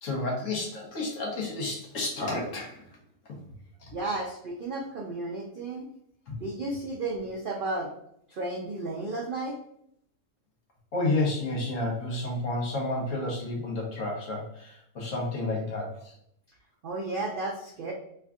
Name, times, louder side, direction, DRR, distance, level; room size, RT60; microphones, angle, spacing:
voice 1, 0.0-3.0 3.8-3.9 6.3-6.4 10.9-16.1, left 2 dB, 60° left, -1 dB, 1.2 m, -31 dB
voice 2, 3.9-5.9 6.4-7.9 8.3-9.5 16.8-17.9, right 2 dB, 90° right, -2 dB, 0.4 m, -33 dB
3.4 x 2.2 x 3.6 m, 0.71 s
omnidirectional pair, 1.6 m